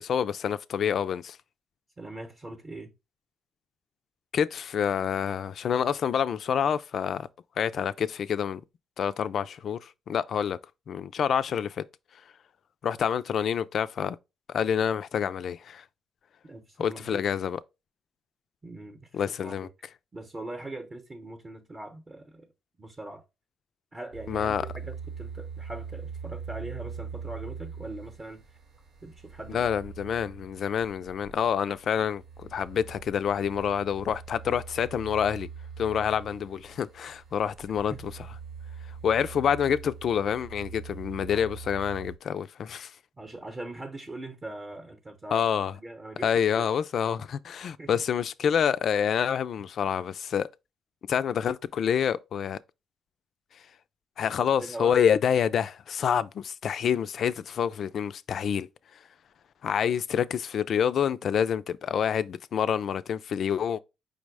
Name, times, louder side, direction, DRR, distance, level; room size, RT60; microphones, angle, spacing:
voice 1, 0.0-1.4 4.3-7.3 7.6-8.6 9.0-10.6 10.9-11.8 12.8-14.2 14.5-15.8 16.8-17.6 19.1-19.7 24.3-24.7 29.5-35.5 35.8-37.9 39.0-42.9 45.3-45.7 46.2-50.5 51.1-52.6 54.2-58.7 59.6-63.8, left 8 dB, 60° left, 0.3 m, -27 dB
voice 2, 2.0-2.9 16.4-17.2 18.6-19.7 20.1-22.5 22.8-23.2 23.9-28.4 29.0-29.7 37.9-38.0 43.2-46.7 47.8-48.0 54.6-55.0, right 2 dB, 30° right, 0.8 m, -41 dB
sound 1, 24.1-42.2, right 6 dB, 60° right, 0.8 m, -42 dB
5.1 x 2.1 x 4.7 m
cardioid pair, 90°, 0 cm